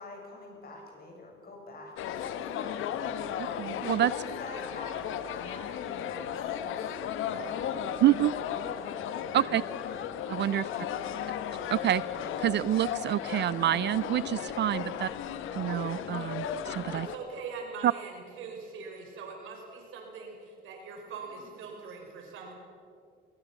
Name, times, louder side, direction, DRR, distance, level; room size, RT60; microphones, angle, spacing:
voice 1, 0.0-3.2 4.1-8.5 9.9-10.0 10.7-11.0 21.3-21.7, left 2 dB, 50° left, 0 dB, 8.0 m, -47 dB
sound 1, 2.0-17.2, left 9 dB, 85° left, 1.3 m, -35 dB
voice 2, 3.4-4.1 8.0-8.3 9.3-9.6 10.3-10.6 11.7-12.0 12.4-15.1 15.5-17.1 17.8-17.9, right 12 dB, 60° right, 19 dB, 0.4 m, -27 dB
voice 3, 16.9-22.5, right 5 dB, 85° right, 2 dB, 5.4 m, -42 dB
20.5 x 20.5 x 7.2 m, 2.3 s
cardioid pair, 90°, 20 cm